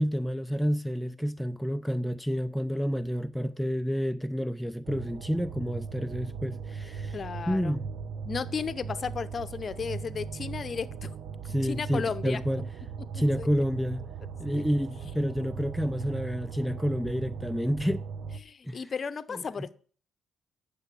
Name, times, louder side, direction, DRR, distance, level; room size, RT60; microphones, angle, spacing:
voice 1, 0.0-7.2 7.5-7.9 11.5-12.6 13.1-14.0 14.4-18.0 18.7-18.8 19.3-19.4, equal, ahead, 0.4 m, -29 dB
sound 1, 4.8-18.4, right 5 dB, 65° right, 0.7 m, -38 dB
voice 2, 7.1-7.8 8.2-11.1 11.6-12.4 13.1-13.5 14.5-14.6 18.4-19.7, left 6 dB, 45° left, 0.8 m, -34 dB
9.3 x 6.9 x 8.4 m
cardioid pair, 90°, 0 cm